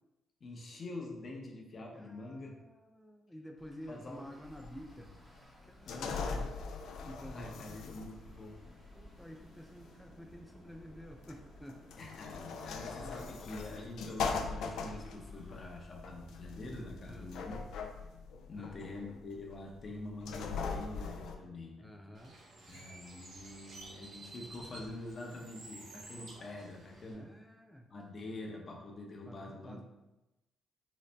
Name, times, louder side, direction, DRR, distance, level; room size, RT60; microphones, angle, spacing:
voice 1, 0.4-2.6 3.9-4.2 5.8-6.5 7.3-8.6 12.0-17.6 18.5-21.9 22.7-27.3 27.9-29.8, left 2 dB, 40° left, 0 dB, 0.8 m, -45 dB
voice 2, 1.9-5.1 5.6-6.4 7.1-7.7 8.9-11.8 13.0-13.2 17.0-17.3 18.6-18.8 21.8-22.3 27.1-27.9 29.3-29.8, equal, 5° left, 2 dB, 0.4 m, -51 dB
Traffic noise roadway noise, 3.6-15.7, equal, 10° right, 0.8 m, -58 dB
sound 1, 4.4-21.4, left 5 dB, 80° left, 0.3 m, -41 dB
Bird, 22.1-27.1, right 2 dB, 60° right, 0.8 m, -52 dB
3.9 x 2.0 x 3.3 m, 0.99 s
cardioid pair, 90°, 0 cm